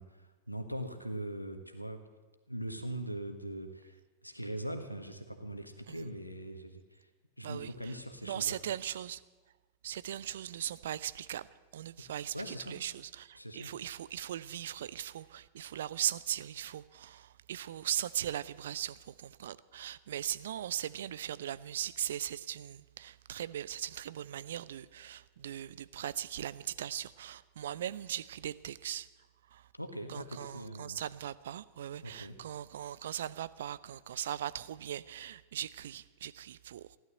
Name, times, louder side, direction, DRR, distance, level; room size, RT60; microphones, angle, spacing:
voice 1, 0.0-2.0 2.5-7.1 7.4-8.6 12.3-12.8 13.3-13.7 29.7-31.0 32.0-32.4, right 1 dB, 90° left, 7 dB, 1.5 m, -41 dB
voice 2, 8.2-9.2 9.8-11.5 11.7-29.1 29.5-29.6 30.1-37.0, right 10 dB, 60° right, 17 dB, 0.5 m, -39 dB
16.0 x 11.5 x 7.7 m, 1.2 s
figure-of-eight pair, 90°, 0 cm